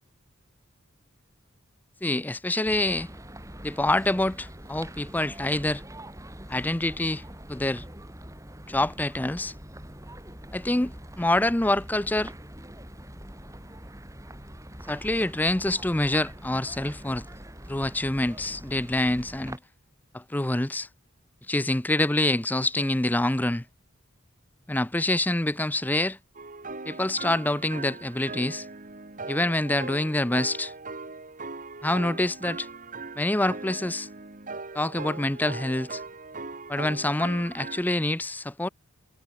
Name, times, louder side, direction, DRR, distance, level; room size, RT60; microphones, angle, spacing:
voice 1, 2.0-3.1 3.6-5.8 6.5-7.2 7.5-7.8 8.6-9.5 10.5-12.3 14.9-17.2 17.7-19.6 20.1-20.9 21.5-23.6 24.7-26.2 26.9-28.7 29.3-30.7 31.8-32.7 33.2-34.1 34.7-36.0 36.7-38.7, left 1 dB, 10° left, 0.5 m, -26 dB
sound 1, 2.6-19.6, right 1 dB, 15° right, 6.8 m, -44 dB
sound 2, 26.3-37.8, right 3 dB, 35° right, 1.5 m, -39 dB
head